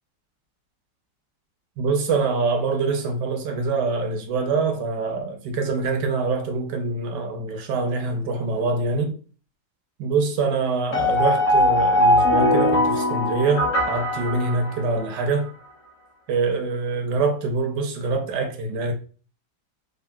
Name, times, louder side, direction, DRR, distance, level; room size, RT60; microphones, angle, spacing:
voice 1, 1.8-9.1 10.0-15.5 16.3-18.9, right 4 dB, 75° right, 1.2 m, -24 dB
sound 1, 10.9-15.2, left 1 dB, 45° left, 1.1 m, -20 dB
3.5 x 2.4 x 2.2 m
omnidirectional pair, 1.9 m